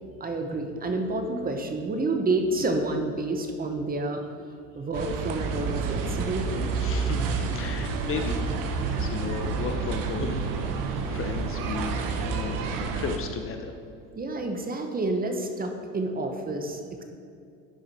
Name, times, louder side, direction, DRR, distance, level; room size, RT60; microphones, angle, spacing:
voice 1, 0.2-4.2 4.7-6.7 14.2-17.0, right 2 dB, 20° right, 5 dB, 0.9 m, -29 dB
sound 1, 4.9-13.2, right 4 dB, 55° right, 1.1 m, -29 dB
voice 2, 6.8-8.4 8.7-13.7, left 5 dB, 35° left, 5 dB, 0.7 m, -35 dB
11.0 x 4.9 x 4.2 m, 2.5 s
supercardioid pair, 95°, 39 cm